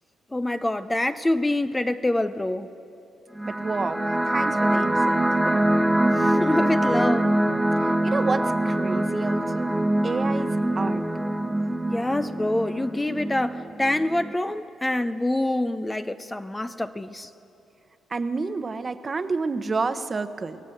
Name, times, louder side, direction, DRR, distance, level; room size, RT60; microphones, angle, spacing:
voice 1, 0.3-2.7 6.2-7.3 11.9-17.3, left 1 dB, 15° left, 10 dB, 0.7 m, -26 dB
sound 1, 3.3-14.3, right 1 dB, 5° right, 1.4 m, -24 dB
voice 2, 3.4-5.7 7.8-9.7 10.0-11.0 18.1-20.6, right 4 dB, 30° right, 10 dB, 1.1 m, -30 dB
27.5 x 17.0 x 8.0 m, 2.7 s
cardioid pair, 90°, 0 cm